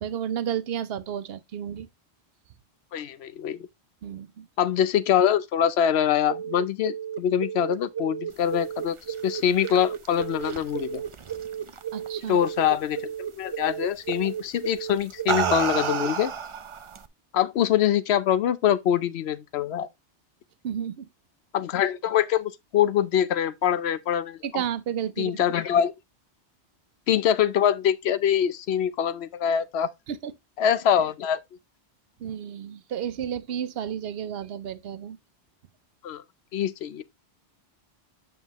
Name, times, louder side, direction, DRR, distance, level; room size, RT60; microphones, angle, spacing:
voice 1, 0.0-1.9 4.0-4.5 11.9-12.4 20.6-21.1 24.4-25.4 30.1-30.3 32.2-35.2, right 9 dB, 65° right, 0.9 m, -32 dB
voice 2, 2.9-3.6 4.6-9.0 9.2-11.0 12.3-16.3 17.3-19.9 21.5-24.4 25.2-25.9 27.1-29.9 30.6-31.4 36.0-36.2 36.5-37.0, left 9 dB, 70° left, 0.9 m, -24 dB
sound 1, 6.3-16.1, right 9 dB, 25° right, 0.8 m, -34 dB
sound 2, 9.2-12.1 12.4-12.8 14.1-14.3 14.9-17.1, right 6 dB, 40° right, 0.4 m, -31 dB
7.4 x 5.8 x 2.9 m
omnidirectional pair, 1.1 m